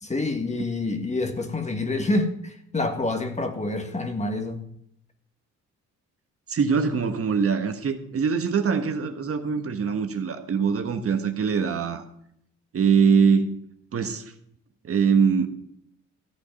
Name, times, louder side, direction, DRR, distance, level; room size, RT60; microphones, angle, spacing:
voice 1, 0.0-4.6, left 2 dB, 20° left, 6 dB, 1.7 m, -27 dB
voice 2, 6.5-12.0 12.7-13.6 13.9-14.2 14.8-15.5, right 6 dB, 50° right, 6 dB, 1.4 m, -23 dB
14.0 x 8.4 x 5.3 m, 0.71 s
cardioid pair, 90°, 30 cm